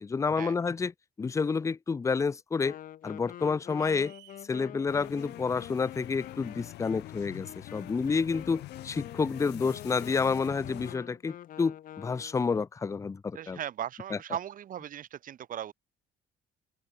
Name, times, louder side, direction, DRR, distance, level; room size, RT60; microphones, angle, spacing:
voice 1, 0.0-0.9 1.2-2.8 3.0-4.1 4.5-13.6 14.1-14.2, left 5 dB, 20° left, 0.5 m, -29 dB
Wind instrument woodwind instrument, 2.6-12.5, left 11 dB, 55° left, 1.2 m, -46 dB
sound 1, 3.8-4.5, right 19 dB, 90° right, 7.2 m, -55 dB
sound 2, 4.9-11.0, left 18 dB, 85° left, 5.6 m, -45 dB
voice 2, 13.3-15.7, right 10 dB, 55° right, 2.3 m, -38 dB
open air
cardioid pair, 110°, 17 cm